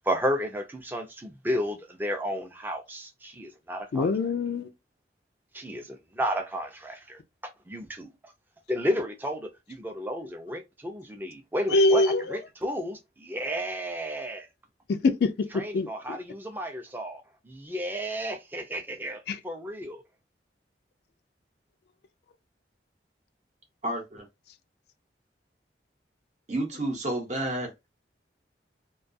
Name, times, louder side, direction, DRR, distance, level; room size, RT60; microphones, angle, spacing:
voice 1, 0.0-4.1 5.5-8.3 8.7-12.0 12.3-14.5 15.5-20.0, equal, 10° right, 0.4 m, -32 dB
voice 2, 3.9-4.7 11.7-12.4 14.9-16.2 19.3-19.4, left 2 dB, 60° left, 0.3 m, -24 dB
voice 3, 23.8-24.2 26.5-27.7, right 1 dB, 40° right, 0.8 m, -30 dB
2.3 x 2.3 x 2.5 m
head